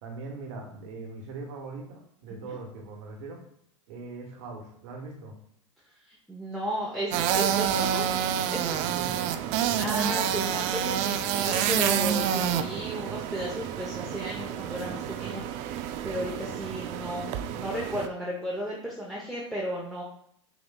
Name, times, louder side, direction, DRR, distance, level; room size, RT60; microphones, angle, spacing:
voice 1, 0.0-3.4 3.9-5.4 8.9-9.9, right 3 dB, 65° right, 2 dB, 1.3 m, -41 dB
voice 2, 6.1-8.2 8.5-8.8 9.7-20.0, equal, ahead, -4 dB, 0.8 m, -34 dB
sound 1, 7.1-18.1, right 9 dB, 45° right, 0.4 m, -28 dB
6.1 x 3.1 x 2.3 m, 0.70 s
hypercardioid pair, 110°, 16 cm